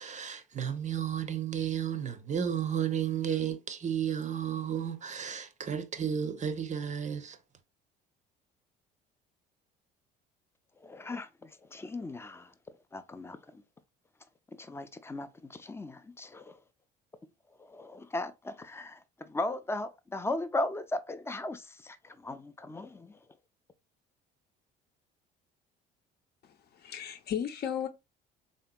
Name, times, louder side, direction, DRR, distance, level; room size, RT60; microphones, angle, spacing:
voice 1, 0.0-7.4, right 8 dB, 35° right, 0.6 m, -33 dB
voice 2, 10.8-12.5 12.9-13.6 14.6-16.5 17.7-19.0 19.3-23.1, left 2 dB, 10° left, 0.4 m, -37 dB
voice 3, 26.4-27.9, left 9 dB, 50° left, 0.7 m, -35 dB
3.4 x 2.8 x 2.2 m
supercardioid pair, 75°, 21 cm